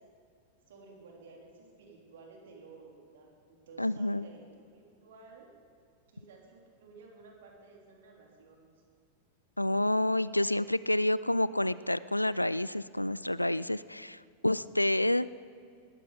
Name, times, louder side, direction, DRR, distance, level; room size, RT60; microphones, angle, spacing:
voice 1, 0.7-5.5 6.1-8.7, right 4 dB, 60° right, -1 dB, 3.2 m, -54 dB
voice 2, 3.8-4.3 9.6-15.3, left 1 dB, 85° left, 18 dB, 0.3 m, -29 dB
20.0 x 14.0 x 4.0 m, 2.4 s
figure-of-eight pair, 90°, 0 cm